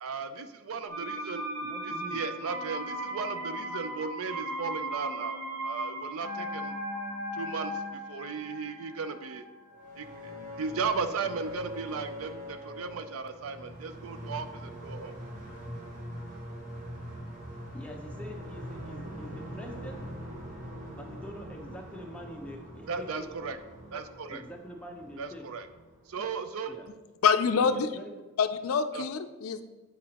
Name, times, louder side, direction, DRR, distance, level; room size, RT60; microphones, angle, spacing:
voice 1, 0.0-1.5 1.8-6.7 7.3-9.4 10.0-10.1 10.6-15.1 22.9-23.6 23.9-24.4 25.2-25.7 26.1-26.8 28.9-29.1, right 5 dB, 75° right, 10 dB, 0.5 m, -36 dB
sound 1, 0.9-10.6 10.9-11.0, right 1 dB, 55° right, 1.2 m, -37 dB
voice 2, 1.7-2.2 17.7-20.1 20.9-23.5 24.3-25.5 26.7-26.9 27.6-28.3, equal, 5° left, 1 dB, 0.7 m, -45 dB
sound 2, 9.7-26.6, equal, 40° right, 1.2 m, -43 dB
voice 3, 27.2-27.9 28.4-29.6, left 6 dB, 75° left, 10 dB, 0.4 m, -25 dB
8.1 x 5.0 x 2.9 m, 1.2 s
head